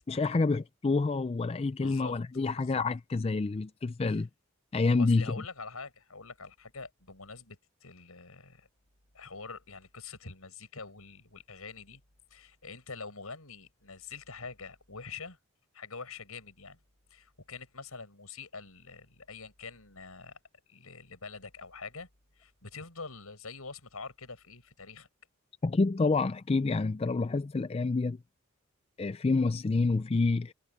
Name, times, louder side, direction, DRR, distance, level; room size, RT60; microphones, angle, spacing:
voice 1, 0.1-4.3 4.7-5.3 25.6-28.2 29.0-30.5, left 3 dB, 25° left, 0.3 m, -28 dB
voice 2, 1.8-2.1 2.5-2.8 4.1-4.2 5.0-8.7 9.1-12.0 12.3-15.4 15.7-16.8 17.1-20.4 20.7-22.1 22.4-25.1, left 4 dB, 85° left, 6.6 m, -45 dB
head